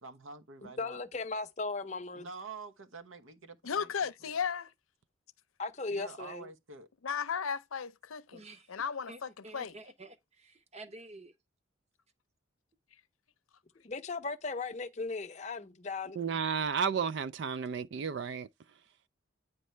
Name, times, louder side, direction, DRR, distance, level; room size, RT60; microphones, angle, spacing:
voice 1, 0.0-1.0 2.1-3.9 4.2-4.3 5.9-6.9, right 4 dB, 85° right, 1.0 m, -47 dB
voice 2, 0.6-2.3 5.6-6.5 13.8-16.2, left 3 dB, 35° left, 0.6 m, -37 dB
voice 3, 3.6-4.7 7.0-8.4 8.7-9.7, left 6 dB, 90° left, 0.6 m, -35 dB
voice 4, 8.3-8.7 9.1-11.3, right 2 dB, 30° right, 0.7 m, -50 dB
voice 5, 16.2-18.5, right 6 dB, 55° right, 0.3 m, -32 dB
9.3 x 5.3 x 3.2 m
head